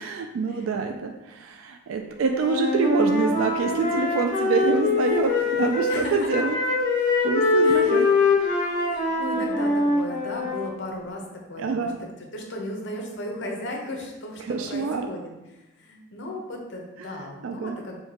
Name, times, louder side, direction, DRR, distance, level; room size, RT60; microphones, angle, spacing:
voice 1, 0.0-6.6 7.2-8.1 11.6-12.0 14.4-15.1 17.0-17.1 17.4-17.7, right 4 dB, 75° right, 4 dB, 0.3 m, -26 dB
Wind instrument woodwind instrument, 2.3-6.0 6.3-10.7, left 3 dB, 40° left, 1.5 m, -23 dB
voice 2, 5.9-6.6 7.6-8.3 8.9-11.2 11.5-18.0, left 1 dB, 60° left, 0 dB, 0.7 m, -36 dB
5.7 x 2.7 x 2.8 m, 1.0 s
head